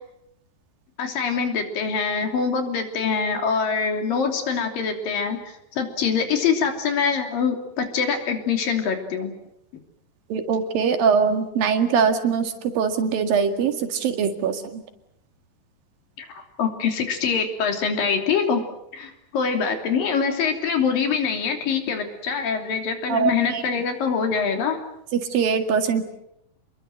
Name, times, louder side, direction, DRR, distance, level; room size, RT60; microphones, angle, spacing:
voice 1, 1.0-9.3 16.2-18.6 18.9-24.8, left 6 dB, 70° left, 4 dB, 4.7 m, -24 dB
voice 2, 10.3-14.6 23.1-23.6 25.3-26.0, right 6 dB, 75° right, 6 dB, 3.8 m, -22 dB
29.0 x 22.0 x 7.8 m, 0.80 s
omnidirectional pair, 4.1 m